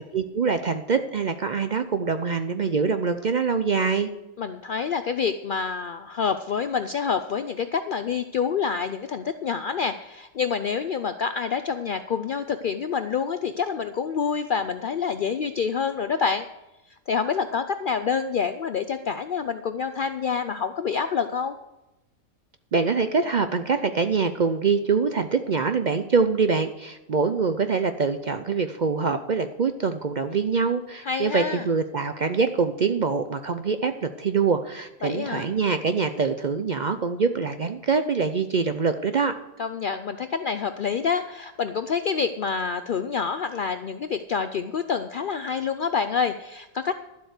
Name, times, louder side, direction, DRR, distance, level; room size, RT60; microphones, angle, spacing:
voice 1, 0.1-4.1 22.7-39.3, right 5 dB, 60° right, 9 dB, 0.4 m, -24 dB
voice 2, 4.4-16.5 17.1-21.6 31.0-31.6 35.0-35.5 39.6-46.9, left 6 dB, 80° left, 10 dB, 0.4 m, -27 dB
12.0 x 7.9 x 6.5 m, 0.99 s
omnidirectional pair, 1.5 m